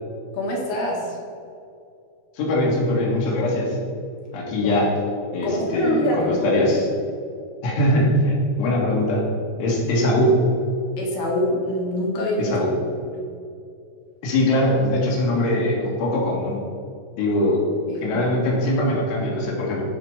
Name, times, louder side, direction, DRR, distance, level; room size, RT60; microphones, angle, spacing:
voice 1, 0.3-1.2 4.6-4.8 5.4-6.6 11.0-12.4 17.9-18.2, left 1 dB, 55° left, -3 dB, 3.3 m, -25 dB
voice 2, 2.4-3.8 4.3-4.9 5.3-6.9 7.6-9.3 9.6-10.4 12.4-12.7 14.2-16.6 17.2-17.6 18.0-19.8, left 1 dB, 80° left, -3 dB, 4.3 m, -21 dB
15.5 x 5.2 x 4.9 m, 2.5 s
omnidirectional pair, 5.6 m